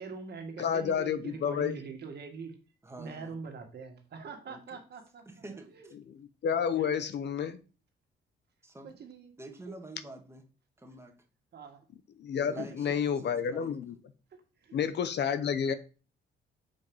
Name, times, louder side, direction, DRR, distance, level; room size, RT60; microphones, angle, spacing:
voice 1, 0.0-2.5 3.0-5.2 5.7-5.9 6.8-7.0 8.8-9.3 9.7-9.8 11.5-11.8 12.6-12.7 14.6-14.8, right 5 dB, 55° right, 1.8 m, -43 dB
voice 2, 0.6-1.8 6.1-7.6 12.2-13.9 14.7-15.7, left 7 dB, 60° left, 0.7 m, -30 dB
voice 3, 2.8-3.3 4.5-4.8 5.2-5.9 8.6-9.0 9.4-10.4 10.8-11.1 12.4-13.8, right 2 dB, 15° right, 1.5 m, -47 dB
5.3 x 4.6 x 5.4 m
cardioid pair, 90°, 20 cm